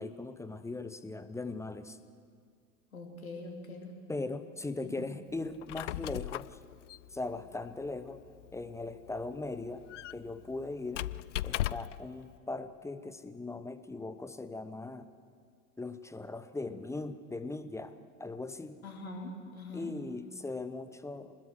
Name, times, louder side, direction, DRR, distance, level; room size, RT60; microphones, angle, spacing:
voice 1, 0.0-2.0 4.1-6.6 7.1-8.2 8.5-9.8 10.1-11.0 11.4-15.1 15.8-17.9 18.2-18.8 19.7-21.3, left 3 dB, 5° left, 11 dB, 0.8 m, -39 dB
voice 2, 2.9-3.9 4.8-5.0 18.8-19.9, left 2 dB, 75° left, 1 dB, 3.6 m, -43 dB
Squeak, 5.5-12.1, left 14 dB, 60° left, 0.5 m, -39 dB
25.0 x 20.5 x 6.4 m, 2.1 s
figure-of-eight pair, 85°, 42 cm